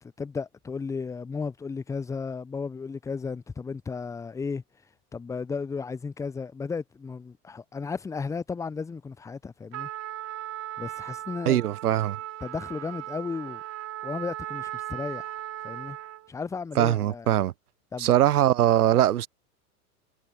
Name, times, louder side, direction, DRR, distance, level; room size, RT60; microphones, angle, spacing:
voice 1, 0.2-4.6 5.1-9.9 10.8-11.6 12.4-13.6 14.0-16.0 16.3-17.3 17.9-18.1, left 5 dB, 5° left, 0.5 m, -34 dB
Trumpet, 9.7-16.3, right 13 dB, 35° right, 4.2 m, -37 dB
voice 2, 11.5-12.2 16.8-17.5 18.0-19.3, right 12 dB, 75° right, 1.0 m, -21 dB
hypercardioid pair, 95°, 45 cm